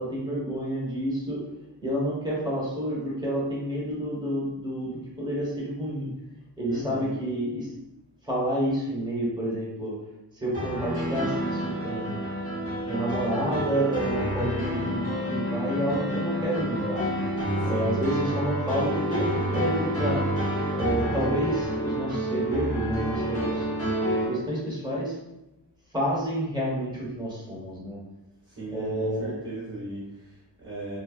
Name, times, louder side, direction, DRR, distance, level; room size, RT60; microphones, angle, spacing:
voice 1, 0.0-1.4 1.8-6.1 6.6-7.7 8.2-9.9 10.3-12.3 12.9-17.3 17.6-20.2 20.7-23.6 24.3-25.2 25.9-28.0 28.7-29.4, right 1 dB, 10° right, -7 dB, 1.1 m, -29 dB
voice 2, 6.7-7.2 17.6-18.1 28.5-31.0, right 2 dB, 35° right, -7 dB, 0.9 m, -38 dB
sound 1, 10.5-24.3, equal, 30° left, 1.0 m, -29 dB
2.5 x 2.2 x 2.4 m, 0.93 s
wide cardioid pair, 60°, 44 cm